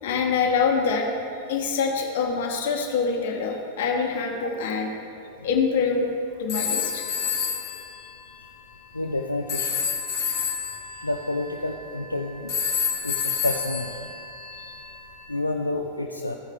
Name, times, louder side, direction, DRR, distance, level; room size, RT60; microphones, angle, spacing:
voice 1, 0.0-1.1 1.5-4.9 5.4-6.1 6.4-7.0, left 5 dB, 55° left, 1 dB, 1.3 m, -25 dB
sound 1, 6.5-7.8 9.5-12.0 12.5-14.8, left 6 dB, 30° left, 2.1 m, -28 dB
voice 2, 8.9-9.9 11.0-12.5 13.0-14.1 15.3-16.4, left 2 dB, 85° left, 3 dB, 0.4 m, -29 dB
15.0 x 9.4 x 2.3 m, 2.9 s
figure-of-eight pair, 90°, 0 cm